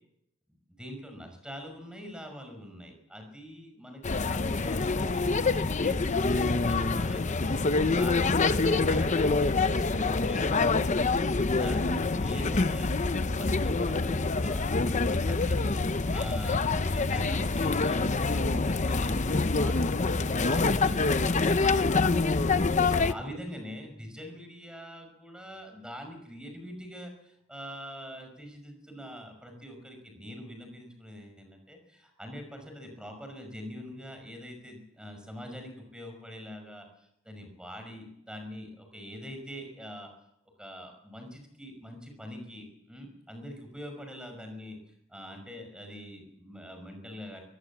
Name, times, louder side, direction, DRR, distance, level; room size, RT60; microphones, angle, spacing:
voice 1, 0.7-40.1 40.6-44.8 45.1-47.4, equal, 5° right, 4 dB, 5.7 m, -44 dB
sound 1, 4.0-23.1, left 3 dB, 35° left, 0.8 m, -26 dB
23.0 x 18.0 x 7.3 m, 0.78 s
head